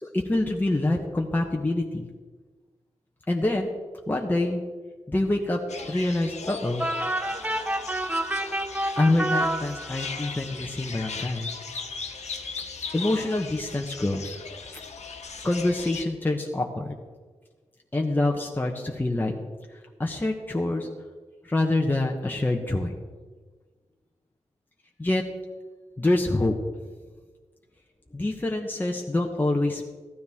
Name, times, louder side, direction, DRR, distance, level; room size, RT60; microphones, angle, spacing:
voice 1, 0.0-2.1 3.3-3.7 4.1-4.6 5.1-5.6 5.9-6.9 9.0-11.5 12.9-14.4 15.4-16.8 17.9-19.3 20.0-20.9 21.5-23.0 25.0-25.2 26.0-26.5 28.1-29.8, left 2 dB, 15° left, 1 dB, 1.0 m, -26 dB
sound 1, 5.7-16.0, left 5 dB, 70° left, 1.3 m, -38 dB
sound 2, 6.8-10.3, right 1 dB, 15° right, 0.5 m, -28 dB
15.0 x 12.5 x 3.6 m, 1.4 s
wide cardioid pair, 105°, 12 cm